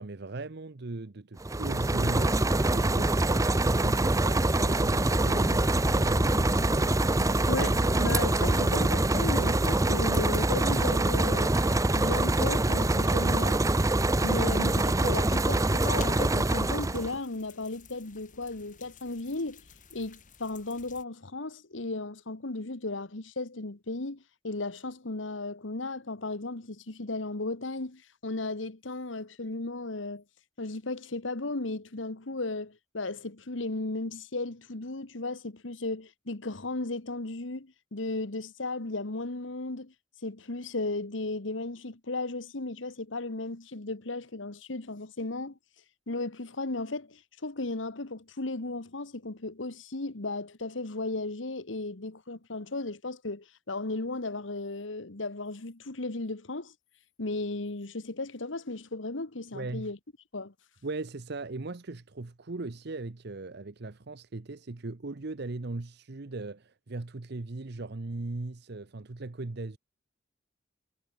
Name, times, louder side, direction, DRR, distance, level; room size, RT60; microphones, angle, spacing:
voice 1, 0.0-6.5 59.5-59.9 60.8-69.8, right 2 dB, 60° right, 0.9 m, -38 dB
sound 1, 1.4-17.2, right 2 dB, 15° right, 0.7 m, -25 dB
sound 2, 3.5-21.0, left 1 dB, 45° left, 3.8 m, -43 dB
voice 2, 7.5-11.6 11.9-13.6 14.2-19.6 19.9-30.2 30.6-39.9 40.2-45.6 46.1-56.7 57.2-60.0 60.3-60.5, left 2 dB, 85° left, 1.6 m, -35 dB
head